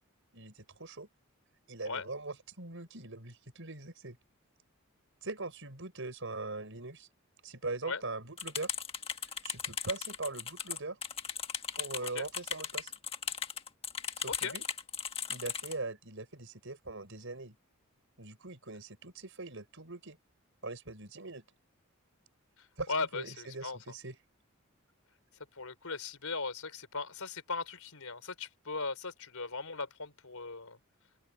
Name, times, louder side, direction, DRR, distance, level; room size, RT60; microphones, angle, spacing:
voice 1, 0.3-1.1 1.7-4.2 5.2-7.1 7.4-8.7 9.4-11.0 11.8-12.9 14.2-14.7 15.3-17.6 18.2-20.2 20.6-21.4 22.8-24.2, right 3 dB, 60° right, 6.0 m, -41 dB
sound 1, 8.4-15.7, left 7 dB, 25° left, 1.5 m, -37 dB
voice 2, 22.6-23.8 25.5-30.8, left 4 dB, 80° left, 4.0 m, -38 dB
open air
head